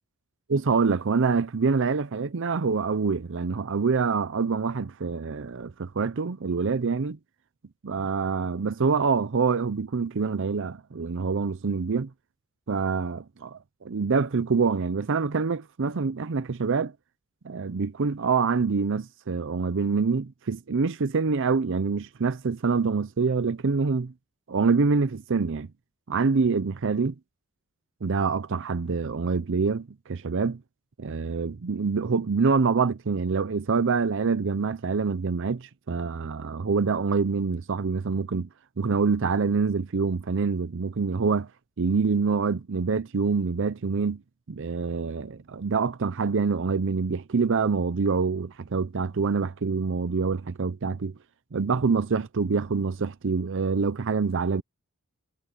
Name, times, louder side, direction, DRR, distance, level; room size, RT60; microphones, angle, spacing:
voice 1, 0.5-7.2 7.8-12.1 12.7-16.9 17.4-24.1 24.5-25.7 26.1-27.1 28.0-30.6 31.0-38.5 38.8-41.5 41.8-44.2 44.5-51.1 51.5-54.6, right 4 dB, 60° right, 0.6 m, -26 dB
head